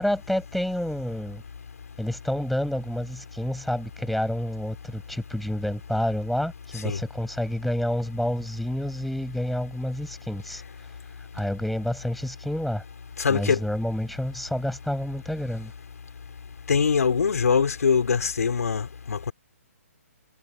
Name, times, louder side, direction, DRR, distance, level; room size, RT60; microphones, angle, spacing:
voice 1, 0.0-1.4 2.0-10.6 11.3-12.8 13.3-15.7, left 1 dB, ahead, 7.7 m, -29 dB
voice 2, 13.2-13.6 16.7-19.3, left 6 dB, 80° left, 4.9 m, -23 dB
hypercardioid pair, 160°, 8 cm